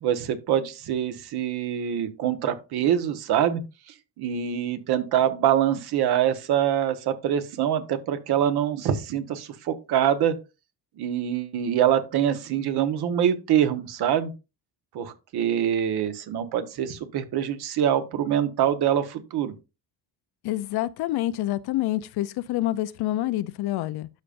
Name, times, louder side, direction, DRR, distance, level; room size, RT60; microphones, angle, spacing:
voice 1, 0.0-3.6 4.2-10.3 11.0-14.3 14.9-19.5, right 10 dB, 60° right, 1.3 m, -24 dB
voice 2, 20.4-24.1, left 15 dB, 60° left, 0.6 m, -27 dB
12.5 x 5.1 x 2.5 m
cardioid pair, 130°, 43 cm